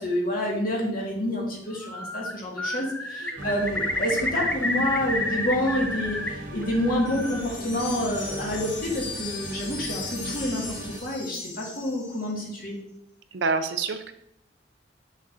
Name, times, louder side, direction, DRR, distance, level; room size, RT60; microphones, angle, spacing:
voice 1, 0.0-12.8, left 1 dB, 50° left, -2 dB, 1.7 m, -28 dB
Bird, 1.7-2.3 2.6-6.3 6.6-7.4, left 1 dB, 5° left, 0.4 m, -30 dB
sound 1, 3.4-11.0, right 1 dB, 50° right, 0.9 m, -38 dB
sound 2, 7.1-12.4, left 4 dB, 80° left, 1.4 m, -38 dB
voice 2, 13.3-14.1, right 4 dB, 75° right, 8 dB, 0.6 m, -28 dB
6.9 x 6.2 x 2.6 m, 0.74 s
head